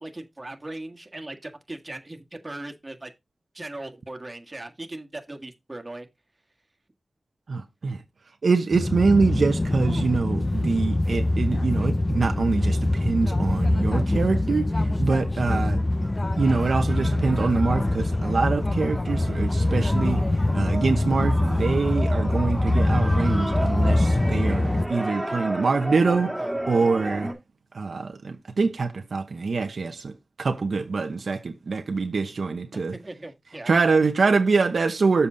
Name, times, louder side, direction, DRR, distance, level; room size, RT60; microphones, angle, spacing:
voice 1, 0.0-3.1 3.5-6.1 24.5-24.8 30.7-30.9 32.7-33.7, right 2 dB, 25° right, 1.6 m, -39 dB
voice 2, 7.5-8.0 8.4-15.8 16.4-20.2 20.5-27.3 27.7-32.9 33.7-35.3, right 4 dB, 80° right, 0.9 m, -24 dB
sound 1, 8.7-24.9, left 1 dB, 30° left, 0.6 m, -24 dB
sound 2, 16.0-27.3, right 1 dB, 5° right, 2.3 m, -34 dB
7.2 x 6.8 x 3.9 m
wide cardioid pair, 90°, 0 cm